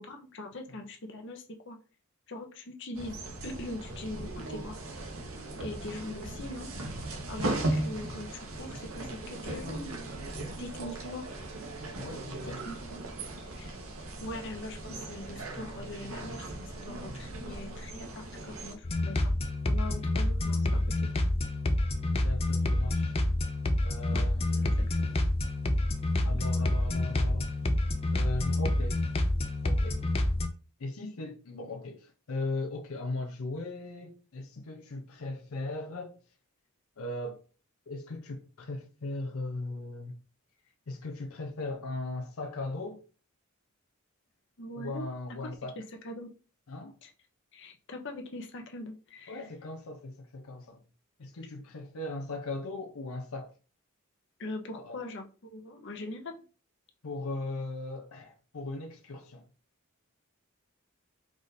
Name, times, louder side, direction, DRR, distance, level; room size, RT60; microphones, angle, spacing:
voice 1, 0.0-1.8 2.3-3.2 3.4-4.8 5.6-6.7 7.3-9.9 10.6-11.2 12.6-13.0 13.6-13.7 14.2-19.3 19.7-21.1 24.1-24.2 24.6-24.7 25.1-25.2 26.3-26.7 44.6-45.1 45.4-45.5 46.0-46.3 47.0-47.1 47.5-49.4 54.4-56.4, left 1 dB, 55° left, 0.9 m, -42 dB
sound 1, 3.0-18.7, right 2 dB, 80° right, 1.1 m, -38 dB
voice 2, 12.0-12.6 22.2-23.2 23.8-24.9 26.2-27.5 28.1-29.0 29.6-30.0 30.8-36.2 37.0-37.4 37.9-40.2 40.9-43.0 44.8-45.7 46.7-47.0 49.3-50.8 51.2-53.5 54.8-55.1 57.0-59.4, left 2 dB, 85° left, 0.6 m, -38 dB
sound 2, 18.8-30.5, left 1 dB, 25° left, 0.5 m, -28 dB
4.8 x 2.6 x 4.1 m
head